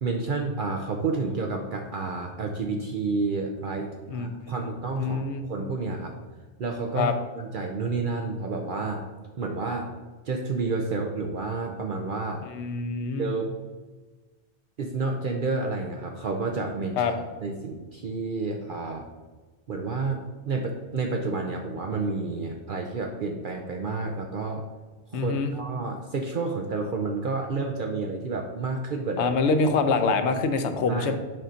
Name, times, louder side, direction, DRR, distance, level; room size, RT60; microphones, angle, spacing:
voice 1, 0.0-6.2 6.6-9.0 9.4-9.9 10.2-12.4 13.2-13.6 14.8-17.1 17.4-19.1 19.7-24.6 25.1-29.3 30.9-31.1, right 3 dB, 55° right, 2 dB, 0.7 m, -30 dB
voice 2, 4.1-4.5 5.0-5.4 7.0-7.1 12.5-13.3 17.0-17.1 25.1-25.5 29.2-31.1, left 4 dB, 75° left, 8 dB, 0.9 m, -25 dB
7.5 x 2.6 x 5.6 m, 1.3 s
omnidirectional pair, 1.2 m